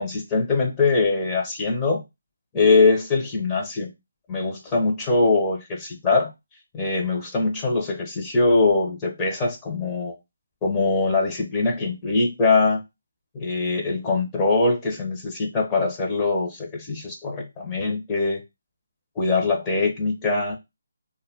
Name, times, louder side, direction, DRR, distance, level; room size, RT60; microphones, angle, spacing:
voice 1, 0.0-2.0 2.5-3.9 4.3-6.3 6.7-10.1 10.6-12.8 13.3-18.4 19.2-20.6, left 3 dB, 20° left, 0.6 m, -22 dB
2.2 x 2.0 x 3.7 m
figure-of-eight pair, 155°, 0 cm